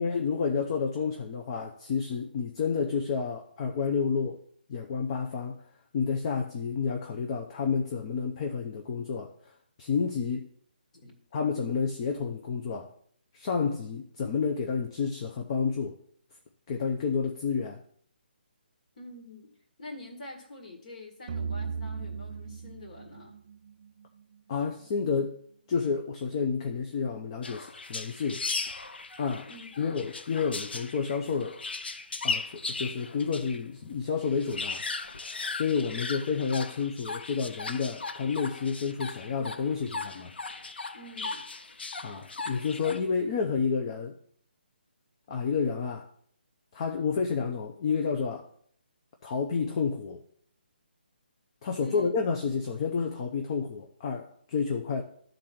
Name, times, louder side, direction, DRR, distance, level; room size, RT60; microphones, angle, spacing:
voice 1, 0.0-4.4 4.7-5.6 5.9-9.3 9.8-10.5 11.3-12.9 13.3-16.0 16.7-17.8 24.5-25.4 25.7-28.4 29.2-29.5 29.8-31.6 32.2-34.8 35.6-40.3 42.0-44.2 45.3-46.1 46.7-48.5 49.2-50.2 51.6-55.0, left 5 dB, 30° left, 0.7 m, -30 dB
voice 2, 19.0-23.4 29.5-29.7 40.9-41.5 51.8-52.1, left 2 dB, 50° left, 1.9 m, -46 dB
sound 1, 21.3-24.5, right 5 dB, 45° right, 0.4 m, -37 dB
sound 2, 27.4-33.6 33.9-34.0 34.2-43.0, left 3 dB, 75° left, 0.7 m, -37 dB
11.5 x 4.0 x 5.8 m
hypercardioid pair, 160°, 6 cm